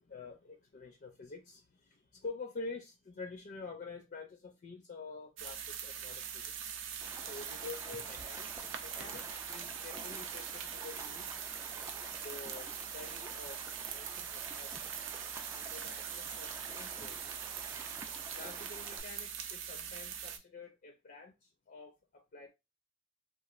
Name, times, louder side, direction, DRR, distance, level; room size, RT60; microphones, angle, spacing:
voice 1, 0.0-6.7 7.3-11.3 12.2-15.1 15.5-17.2 18.3-22.5, left 3 dB, 50° left, 0.5 m, -48 dB
sound 1, 5.4-20.4, right 8 dB, 80° right, 0.5 m, -42 dB
Stream, 7.0-19.0, right 2 dB, 15° right, 0.3 m, -50 dB
2.9 x 2.4 x 2.5 m
head